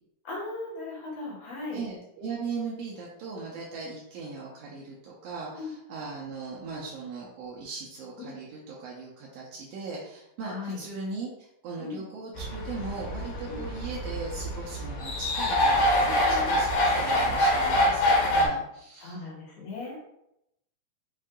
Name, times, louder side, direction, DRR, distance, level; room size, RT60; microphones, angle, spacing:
voice 1, 0.2-1.8 5.6-5.7 8.2-8.3 10.4-10.8 11.8-12.0 13.5-13.7 16.0-16.6 17.8-17.9 19.0-20.0, left 3 dB, 60° left, -4 dB, 2.2 m, -38 dB
voice 2, 1.7-19.2, right 4 dB, 75° right, -4 dB, 1.5 m, -39 dB
sound 1, 12.4-18.5, left 1 dB, 85° left, 2.6 m, -25 dB
5.4 x 2.6 x 3.7 m, 0.82 s
omnidirectional pair, 3.5 m